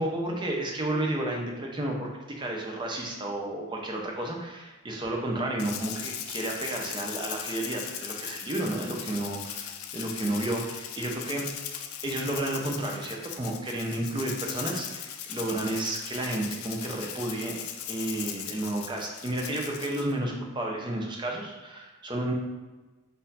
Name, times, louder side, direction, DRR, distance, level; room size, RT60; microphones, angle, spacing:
voice 1, 0.0-11.5 12.0-22.3, right 1 dB, 20° right, 0 dB, 0.6 m, -32 dB
Rattle (instrument), 5.6-20.1, left 9 dB, 85° left, 0.4 m, -39 dB
4.2 x 2.6 x 4.0 m, 1.2 s
head